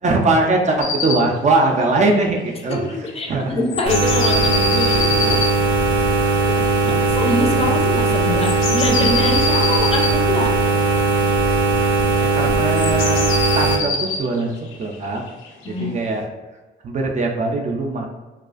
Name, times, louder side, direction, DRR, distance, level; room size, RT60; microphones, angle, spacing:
voice 1, 0.0-2.8 3.3-3.6 5.1-5.7 6.0-6.2 8.2-8.4 12.2-13.2 13.5-15.2 15.7-16.2 16.8-18.1, right 2 dB, 35° right, 1 dB, 0.4 m, -21 dB
sound 1, 0.8-1.2 1.5-1.6 1.8-1.9 2.1-3.3 3.7-5.5 8.1-10.1 12.8-15.8, left 4 dB, 80° left, 0.4 m, -24 dB
voice 2, 3.1-5.3 6.9-10.6 15.6-16.0, left 2 dB, 30° left, 1 dB, 0.5 m, -24 dB
sound 2, 3.9-13.8, right 4 dB, 90° right, 0.5 m, -18 dB
2.3 x 2.3 x 2.4 m, 1.2 s
cardioid pair, 90°, 20 cm